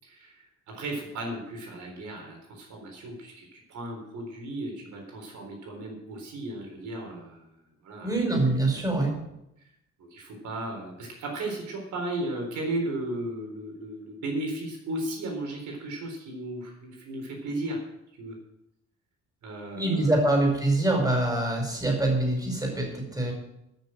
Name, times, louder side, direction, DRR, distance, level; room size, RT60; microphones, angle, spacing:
voice 1, 0.0-7.4 7.8-8.1 10.0-17.8 18.2-18.4 19.4-20.1, right 1 dB, 75° right, 1 dB, 4.0 m, -35 dB
voice 2, 8.0-9.2 19.7-23.3, right 2 dB, 10° right, 1 dB, 5.1 m, -25 dB
13.0 x 6.7 x 7.6 m, 0.82 s
cardioid pair, 90°, 30 cm